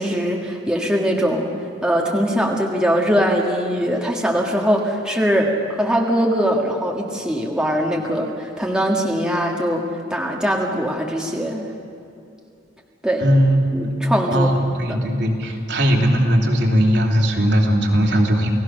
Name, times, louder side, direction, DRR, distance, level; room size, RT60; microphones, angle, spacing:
voice 1, 0.0-1.5 1.8-11.7 13.0-13.2 13.7-14.5 14.9-15.0, equal, 5° right, -1 dB, 1.7 m, -21 dB
voice 2, 13.2-13.6 14.3-18.5, equal, 65° right, 0 dB, 3.0 m, -18 dB
29.0 x 17.5 x 6.4 m, 2.6 s
head